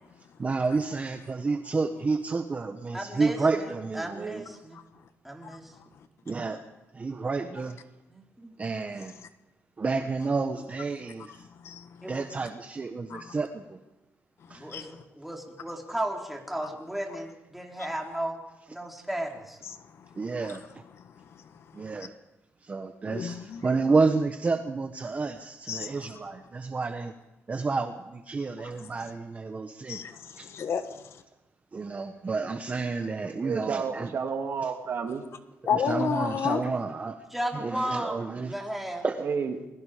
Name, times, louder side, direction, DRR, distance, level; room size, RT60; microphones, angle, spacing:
voice 1, 0.4-4.4 6.3-6.6 6.9-7.8 8.6-9.1 9.8-11.5 12.1-13.8 14.5-14.9 20.1-20.6 21.7-22.1 22.6-27.1 27.5-30.0 30.4-30.5 31.7-34.1 34.6-34.7 35.7-37.2 37.5-38.5 39.0-39.3, right 4 dB, 30° right, 7 dB, 1.2 m, -30 dB
voice 2, 2.9-3.7 3.9-4.8 5.2-5.7 8.1-8.5 12.0-12.2 14.5-18.4 18.7-19.6 37.3-38.2 38.4-39.1, right 1 dB, 5° right, 0 dB, 3.9 m, -34 dB
voice 3, 5.4-5.8 11.6-12.1 13.1-13.3 14.5-15.0 19.8-20.1 20.4-20.5 21.2-21.9 23.1-23.6 25.7-25.9 29.9-31.2 35.6-36.6, left 7 dB, 65° left, 10 dB, 1.5 m, -33 dB
voice 4, 33.4-35.2 39.2-39.5, right 6 dB, 55° right, 4 dB, 2.7 m, -30 dB
28.5 x 21.5 x 5.1 m, 0.99 s
cardioid pair, 115°, 5 cm